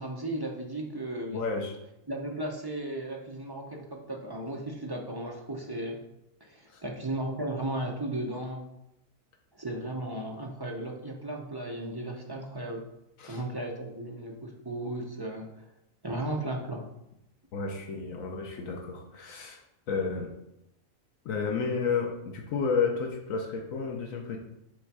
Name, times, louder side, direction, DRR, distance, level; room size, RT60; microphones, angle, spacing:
voice 1, 0.0-1.4 2.1-6.0 6.4-8.6 9.5-12.8 13.3-15.5 16.0-16.9, right 1 dB, 25° right, 0 dB, 0.5 m, -35 dB
voice 2, 1.3-1.7 6.7-6.8 13.2-13.4 17.5-19.6 19.9-20.3 21.2-24.4, left 5 dB, 75° left, 2 dB, 1.2 m, -31 dB
6.3 x 3.5 x 4.7 m, 0.84 s
omnidirectional pair, 1.4 m